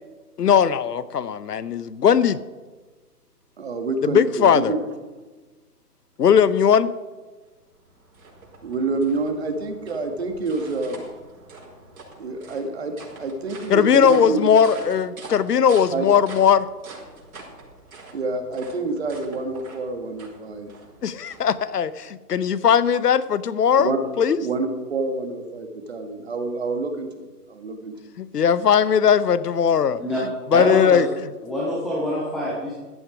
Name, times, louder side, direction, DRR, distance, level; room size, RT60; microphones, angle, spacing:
voice 1, 0.4-2.4 4.1-4.7 6.2-6.9 13.7-16.7 21.0-23.9 24.2-24.4 28.2-30.0 30.5-31.1, left 7 dB, 75° left, 17 dB, 0.9 m, -18 dB
voice 2, 3.6-4.9 8.6-11.1 12.2-14.5 15.9-16.0 18.1-20.7 23.8-24.0 24.4-28.1, right 3 dB, 40° right, 6 dB, 1.7 m, -28 dB
sound 1, 7.5-21.9, right 3 dB, 60° right, 5.4 m, -44 dB
voice 3, 30.5-31.0 31.4-32.7, left 1 dB, ahead, -5 dB, 0.5 m, -25 dB
14.5 x 11.0 x 4.9 m, 1.3 s
hypercardioid pair, 170°, 48 cm